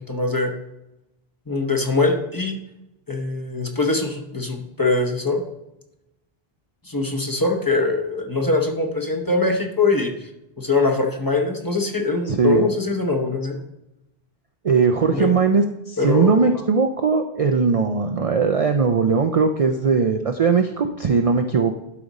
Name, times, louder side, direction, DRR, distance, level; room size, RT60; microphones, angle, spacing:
voice 1, 0.1-0.5 1.5-2.6 3.1-5.4 6.9-10.1 10.6-13.6 15.1-15.3 16.0-16.5, left 3 dB, 20° left, 2 dB, 0.9 m, -22 dB
voice 2, 12.3-12.7 14.6-21.7, right 5 dB, 45° right, 5 dB, 0.5 m, -19 dB
11.5 x 5.1 x 4.1 m, 0.90 s
omnidirectional pair, 1.0 m